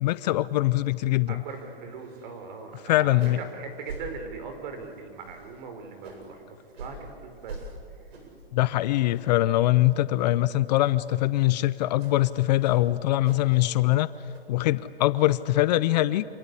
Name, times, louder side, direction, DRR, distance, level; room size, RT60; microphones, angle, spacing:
voice 1, 0.0-1.4 2.9-3.4 8.5-14.1 14.5-16.2, left 16 dB, 45° left, 16 dB, 0.7 m, -23 dB
voice 2, 1.3-8.1, right 5 dB, 50° right, 6 dB, 5.0 m, -40 dB
sound 1, 1.5-1.6 2.0-2.4 2.7-2.8 3.1-3.5 3.8-4.1 4.5-4.8 5.2-6.3 6.7-7.0 7.4-7.7 8.1-8.4 8.8-9.4 9.7-9.9 10.2-10.3 10.8-10.9 11.4-11.5 12.0-12.2 12.6-13.6 13.9-14.4, right 4 dB, 80° right, 7.9 m, -44 dB
26.5 x 26.5 x 8.5 m, 2.4 s
hypercardioid pair, 135°, 31 cm